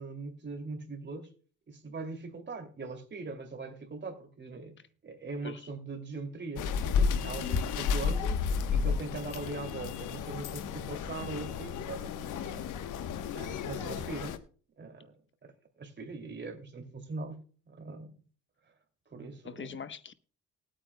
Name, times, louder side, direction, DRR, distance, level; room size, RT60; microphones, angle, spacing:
voice 1, 0.0-1.3 1.7-4.8 5.0-8.4 8.7-12.7 13.3-14.4 14.8-15.1 15.4-15.5 15.8-18.1 19.1-19.8, right 3 dB, 35° right, 2.7 m, -41 dB
sound 1, 6.6-14.4, left 6 dB, 80° left, 1.1 m, -32 dB
voice 2, 7.4-7.7 13.5-13.9 19.4-20.1, left 7 dB, 40° left, 1.0 m, -43 dB
19.5 x 8.9 x 2.2 m
cardioid pair, 90°, 30 cm